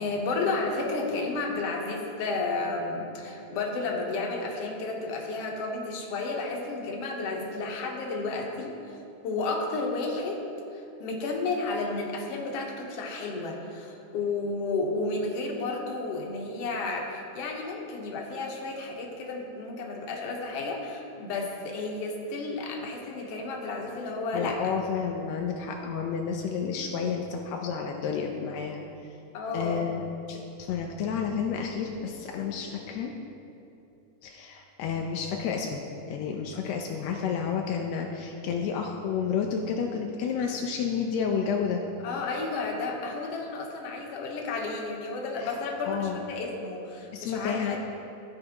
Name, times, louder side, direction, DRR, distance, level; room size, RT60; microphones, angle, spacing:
voice 1, 0.0-8.7 9.2-10.4 10.7-24.7 29.3-29.9 36.5-36.6 42.0-47.8, left 3 dB, 65° left, 0 dB, 1.7 m, -32 dB
voice 2, 24.3-28.8 29.5-30.0 30.3-33.1 34.2-35.8 36.1-41.8 45.4-45.5 45.8-46.2 47.1-47.8, left 6 dB, 85° left, 1 dB, 1.5 m, -30 dB
14.5 x 5.3 x 2.9 m, 2.8 s
omnidirectional pair, 3.6 m